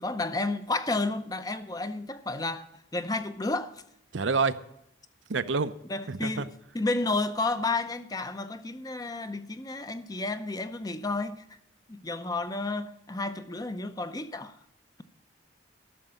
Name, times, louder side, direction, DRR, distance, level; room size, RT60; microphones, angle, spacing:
voice 1, 0.0-2.6 2.9-3.8 5.9-6.5 6.7-11.4 11.9-14.6, left 2 dB, 20° left, 0.6 m, -31 dB
voice 2, 4.1-4.6 5.3-5.7 6.1-6.5, right 4 dB, 80° right, 0.7 m, -27 dB
13.0 x 6.7 x 8.9 m
head